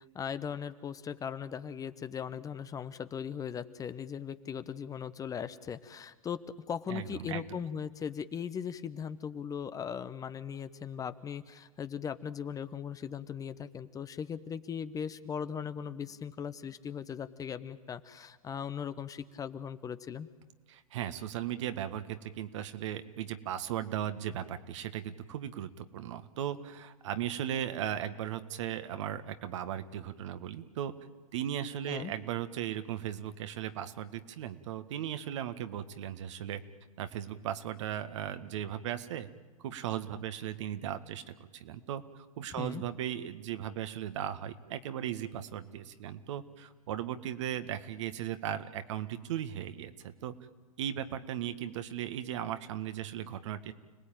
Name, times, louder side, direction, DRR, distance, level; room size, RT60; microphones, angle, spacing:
voice 1, 0.1-20.3 31.9-32.1 42.6-42.8, left 7 dB, 20° left, 12 dB, 0.9 m, -39 dB
voice 2, 6.9-7.6 20.7-30.9 31.3-36.6 37.0-39.3 39.6-50.3 50.8-53.7, right 10 dB, 55° right, 10 dB, 1.6 m, -37 dB
29.5 x 19.5 x 9.1 m, 1.3 s
figure-of-eight pair, 100°, 18 cm